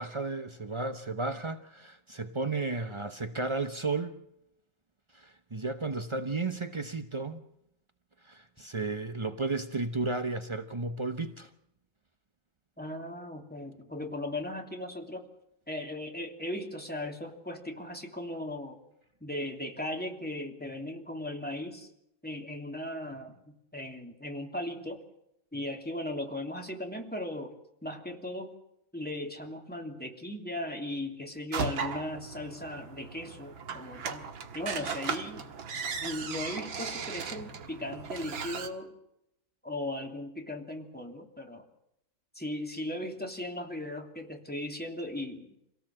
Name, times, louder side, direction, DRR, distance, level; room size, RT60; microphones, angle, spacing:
voice 1, 0.0-4.2 5.1-7.4 8.2-11.5, right 3 dB, 50° right, 9 dB, 0.3 m, -33 dB
voice 2, 12.8-15.3 15.7-18.8 19.2-21.9 22.2-25.0 25.5-27.5 27.8-28.5 28.9-34.3 34.5-35.5 36.0-38.9 39.6-41.7 42.3-45.6, left 1 dB, 5° left, 2 dB, 2.9 m, -37 dB
sound 1, 31.5-38.7, right 6 dB, 85° right, 2.3 m, -37 dB
27.0 x 17.5 x 7.6 m, 0.81 s
omnidirectional pair, 2.1 m